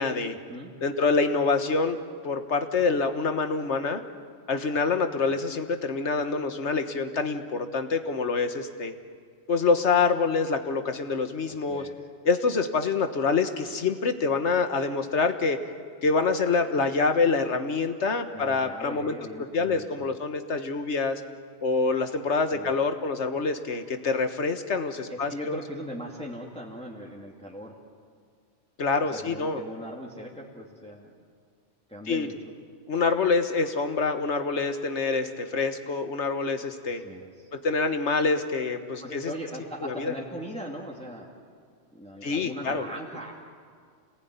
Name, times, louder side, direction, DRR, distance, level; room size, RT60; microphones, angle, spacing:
voice 1, 0.0-0.3 0.8-2.0 2.2-4.0 4.5-8.9 9.5-11.8 12.2-15.6 16.0-19.1 19.5-21.2 21.6-25.6 28.8-29.6 32.1-32.3 32.9-37.0 37.5-39.3 39.8-40.2 42.2-42.9, left 4 dB, 90° left, 8 dB, 1.7 m, -26 dB
voice 2, 18.3-20.1 22.5-22.7 25.1-27.7 29.1-31.1 31.9-32.3 36.8-37.5 39.0-41.4 41.9-43.3, equal, 5° left, -2 dB, 2.3 m, -39 dB
27.0 x 19.5 x 9.6 m, 2.1 s
omnidirectional pair, 1.1 m